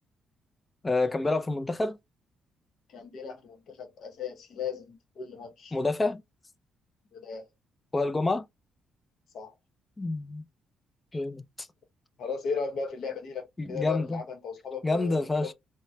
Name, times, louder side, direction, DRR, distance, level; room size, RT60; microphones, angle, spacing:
voice 1, 0.8-2.0 5.7-6.2 7.9-8.4 10.0-10.4 11.1-11.7 13.6-14.2 14.8-15.5, left 2 dB, 20° left, 0.4 m, -28 dB
voice 2, 2.9-5.8 7.1-7.5 9.3-9.5 12.2-15.5, left 5 dB, 65° left, 0.8 m, -36 dB
4.1 x 2.1 x 2.2 m
cardioid pair, 90°, 0 cm